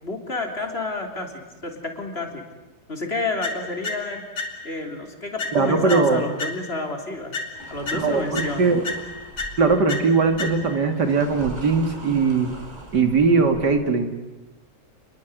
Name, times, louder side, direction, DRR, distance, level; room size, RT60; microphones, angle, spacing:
voice 1, 0.0-2.4 2.9-4.3 4.6-7.4 7.7-8.7, left 2 dB, 35° left, 3 dB, 3.8 m, -30 dB
sound 1, 3.4-4.9 5.4-6.9 7.3-10.9, left 3 dB, 70° left, 3.0 m, -33 dB
voice 2, 5.5-6.2 7.9-8.8 9.6-12.5 12.9-14.1, right 4 dB, 90° right, 6 dB, 3.1 m, -20 dB
sound 2, 7.5-13.7, right 1 dB, 25° right, 4.6 m, -41 dB
29.0 x 21.5 x 8.1 m, 1.1 s
omnidirectional pair, 1.8 m